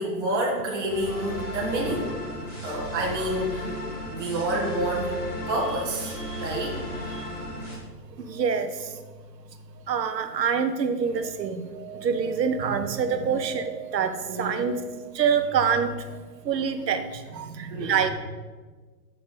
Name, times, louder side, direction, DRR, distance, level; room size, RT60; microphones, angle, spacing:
voice 1, 0.0-2.1 2.6-3.8 4.1-5.2 5.5-7.3 13.2-13.3 14.3-14.7 17.4-18.1, right 1 dB, 45° right, -4 dB, 1.8 m, -29 dB
sound 1, 0.9-7.7, left 1 dB, 5° left, 0.8 m, -35 dB
voice 2, 8.2-8.7 9.9-16.0 16.4-18.1, right 6 dB, 80° right, 9 dB, 0.9 m, -26 dB
6.0 x 5.6 x 5.1 m, 1.4 s
hypercardioid pair, 160°, 50 cm